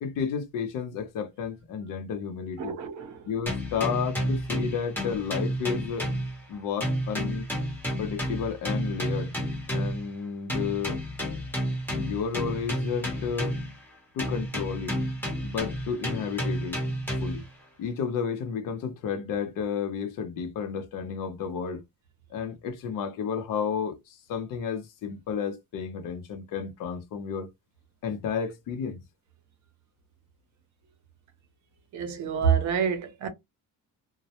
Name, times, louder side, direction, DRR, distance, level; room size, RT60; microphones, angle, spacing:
voice 1, 0.0-2.7 3.3-6.1 6.5-7.5 8.0-9.3 9.7-11.0 11.9-13.6 14.1-15.0 15.4-16.8 17.2-17.5 17.8-21.8 22.3-27.5 28.0-29.0, left 6 dB, 65° left, 0.7 m, -32 dB
voice 2, 2.6-3.3 31.9-33.3, right 7 dB, 55° right, 0.7 m, -27 dB
sound 1, 3.5-6.5 6.8-10.1 10.5-13.8 14.2-17.5, equal, 5° left, 0.8 m, -31 dB
2.2 x 2.0 x 2.8 m
cardioid pair, 165°, 35 cm